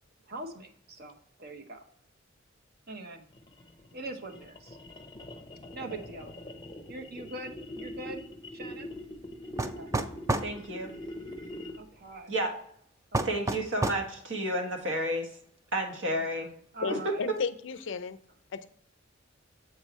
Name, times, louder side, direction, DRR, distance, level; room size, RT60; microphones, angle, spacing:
voice 1, 0.3-1.8 2.9-3.2 3.9-4.8 5.7-6.3 6.9-8.2 8.5-8.9 9.8-9.9 11.8-12.3 13.1-13.5 16.1-17.3, right 2 dB, 55° right, 6 dB, 1.0 m, -43 dB
sound 1, 3.3-12.0, left 1 dB, 25° left, 0.6 m, -43 dB
sound 2, 9.6-10.5 13.1-14.1, right 2 dB, 15° right, 0.4 m, -29 dB
voice 2, 10.4-10.9 12.3-12.5 13.2-15.3 15.7-16.5 16.9-17.0, right 1 dB, 70° right, 2 dB, 1.6 m, -31 dB
voice 3, 16.8-18.2 18.5-18.7, left 5 dB, 65° left, 11 dB, 0.5 m, -34 dB
7.6 x 4.7 x 4.2 m, 0.66 s
head